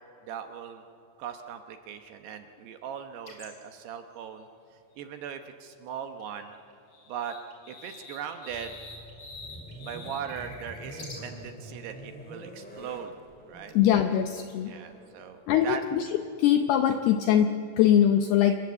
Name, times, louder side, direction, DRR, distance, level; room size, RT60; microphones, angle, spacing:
voice 1, 0.3-0.8 1.2-4.5 5.0-6.5 7.1-7.4 7.7-8.8 9.8-13.1 13.5-13.7 14.6-15.8, right 8 dB, 70° right, 6 dB, 2.7 m, -39 dB
sound 1, 3.3-3.6 5.9-6.0 6.2-11.2 13.9-14.5, left 3 dB, 30° left, 4.9 m, -46 dB
sound 2, 8.5-16.2, equal, ahead, 2.5 m, -46 dB
voice 2, 13.7-14.7 15.5-16.1 16.4-18.6, left 10 dB, 80° left, 7 dB, 2.3 m, -22 dB
27.5 x 22.0 x 7.9 m, 2.9 s
omnidirectional pair, 5.6 m